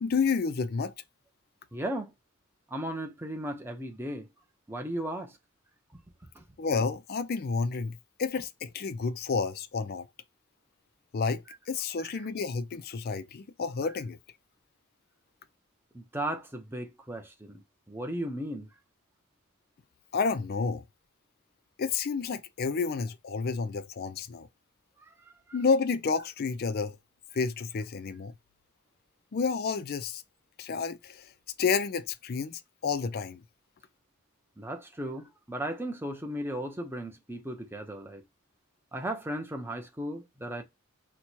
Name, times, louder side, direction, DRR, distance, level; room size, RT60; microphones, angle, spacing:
voice 1, 0.0-0.9 6.6-10.1 11.1-14.2 20.1-20.8 21.8-24.5 25.5-27.0 27.3-28.3 29.3-30.2 30.6-31.3 31.6-33.4, left 5 dB, 45° left, 0.4 m, -30 dB
voice 2, 1.7-2.1 2.7-4.3 4.7-5.4 6.3-6.4 12.0-12.1 15.9-17.6 17.9-18.7 25.1-25.2 34.6-38.2 38.9-40.6, right 1 dB, 10° right, 0.6 m, -36 dB
4.4 x 2.2 x 2.7 m
head